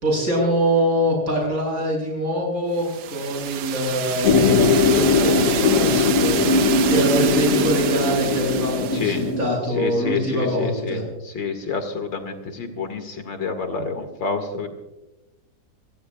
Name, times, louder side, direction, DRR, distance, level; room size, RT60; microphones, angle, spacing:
voice 1, 0.0-2.9 3.1-6.4 6.9-11.0, equal, 50° right, -1 dB, 6.9 m, -24 dB
sound 1, 2.8-9.3, right 10 dB, 80° right, 1.5 m, -29 dB
sound 2, 4.2-9.5, left 3 dB, 45° left, 1.9 m, -20 dB
voice 2, 8.9-9.3 9.7-14.7, left 5 dB, 85° left, 6 dB, 2.7 m, -28 dB
27.0 x 19.0 x 2.3 m, 0.99 s
omnidirectional pair, 2.0 m